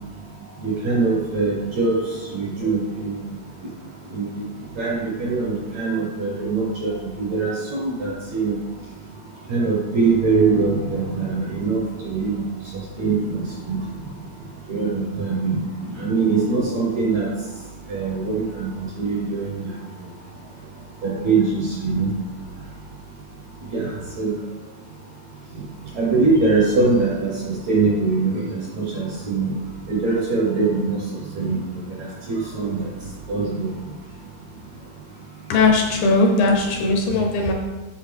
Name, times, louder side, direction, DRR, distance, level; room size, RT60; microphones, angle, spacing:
voice 1, 0.6-2.0 2.3-3.2 4.1-4.3 4.8-6.9 7.2-8.6 9.5-12.5 13.0-13.8 14.7-15.7 16.0-17.3 17.9-19.5 21.0-22.1 23.7-24.3 26.0-29.5 29.9-31.0 31.4-31.6 32.3-32.8 33.3-33.7, right 4 dB, 65° right, -4 dB, 1.8 m, -22 dB
voice 2, 35.5-37.5, left 3 dB, 75° left, 2 dB, 2.2 m, -18 dB
10.5 x 4.4 x 3.4 m, 1.2 s
omnidirectional pair, 4.4 m